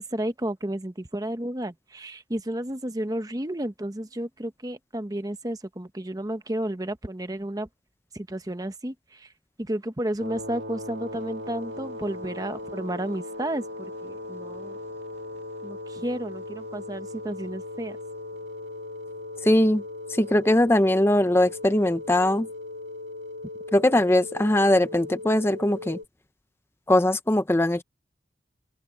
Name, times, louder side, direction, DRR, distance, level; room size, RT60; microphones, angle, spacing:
voice 1, 0.0-7.7 8.1-9.3 9.6-14.8 15.6-18.0, right 1 dB, 20° right, 1.0 m, -32 dB
sound 1, 10.2-26.0, left 2 dB, 90° right, 2.9 m, -38 dB
voice 2, 19.4-19.8 20.1-22.5 23.7-26.0 26.9-27.8, left 1 dB, 15° left, 0.6 m, -21 dB
open air
head